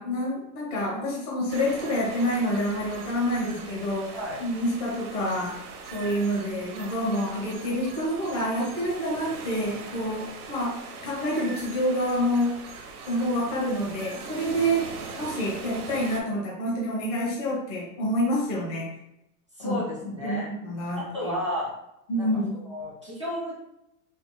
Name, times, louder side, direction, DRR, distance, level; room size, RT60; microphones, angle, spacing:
voice 1, 0.0-5.6 5.9-12.6 13.1-18.9 19.6-21.3 22.1-22.6, equal, 20° left, -4 dB, 0.9 m, -28 dB
sound 1, 1.5-16.2, right 4 dB, 65° right, 0.9 m, -41 dB
voice 2, 4.1-4.4 19.6-20.5 21.0-21.7 22.2-22.3 22.7-23.5, left 1 dB, 25° right, -6 dB, 0.3 m, -32 dB
4.7 x 3.7 x 2.2 m, 0.81 s
supercardioid pair, 170°, 49 cm